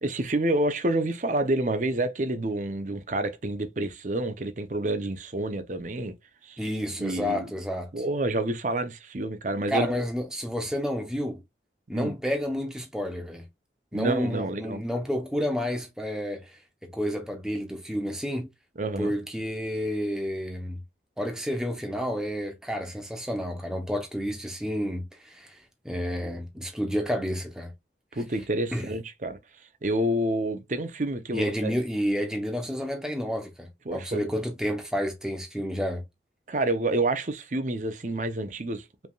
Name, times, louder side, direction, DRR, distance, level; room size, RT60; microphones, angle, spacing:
voice 1, 0.0-6.1 6.4-6.6 7.0-7.5 7.9-9.9 11.9-12.1 13.9-14.8 18.8-19.1 28.1-29.4 29.8-31.7 33.9-34.3 36.5-39.1, right 1 dB, 45° right, 0.7 m, -28 dB
voice 2, 6.6-8.0 9.7-11.4 11.9-13.4 13.9-18.5 19.0-20.8 21.2-27.7 28.1-28.2 28.7-28.9 31.3-36.0, equal, 5° right, 0.8 m, -30 dB
5.3 x 3.4 x 2.3 m
head